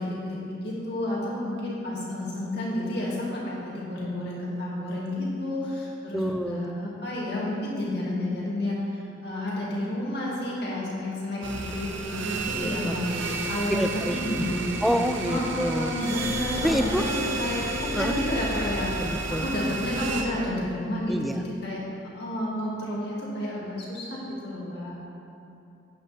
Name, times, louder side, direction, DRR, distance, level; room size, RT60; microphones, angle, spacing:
voice 1, 0.0-14.8 15.3-21.8 22.1-25.0, left 1 dB, 55° left, -5 dB, 2.3 m, -31 dB
voice 2, 6.1-6.6 12.6-13.3 13.7-14.4 14.8-15.9 16.6-17.0 17.9-18.2 19.0-19.5 21.1-21.4, equal, ahead, 6 dB, 0.3 m, -28 dB
sound 1, 11.4-20.2, right 2 dB, 70° right, 0.9 m, -31 dB
11.0 x 9.4 x 3.5 m, 2.7 s
head